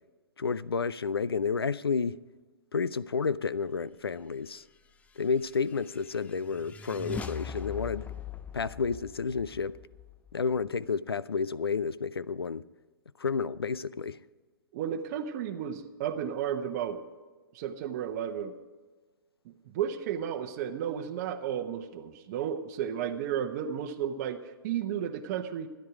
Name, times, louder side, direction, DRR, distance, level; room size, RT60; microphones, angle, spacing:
voice 1, 0.4-2.2 2.7-4.6 5.2-8.1 8.5-9.8 10.3-12.6 13.2-14.2, left 5 dB, 90° left, 0.4 m, -31 dB
sound 1, 5.0-10.7, left 7 dB, 10° left, 0.5 m, -42 dB
voice 2, 14.7-17.0 17.5-18.5 19.7-25.7, right 9 dB, 40° right, 0.9 m, -33 dB
13.0 x 10.5 x 4.9 m
figure-of-eight pair, 120°, 12 cm